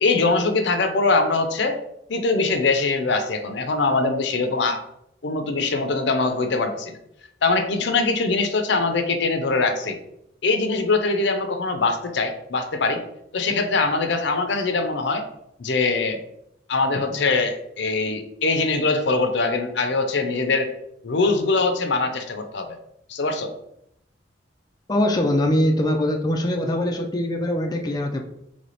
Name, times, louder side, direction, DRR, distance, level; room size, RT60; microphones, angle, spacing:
voice 1, 0.0-1.8 2.1-4.8 5.2-6.9 7.4-10.0 10.4-13.0 13.3-15.3 15.6-16.2 16.7-20.7 21.0-22.7 23.1-23.5, left 3 dB, 70° left, 7 dB, 0.6 m, -22 dB
voice 2, 24.9-28.2, left 1 dB, 20° left, 2 dB, 0.4 m, -22 dB
3.3 x 3.3 x 4.0 m, 0.78 s
head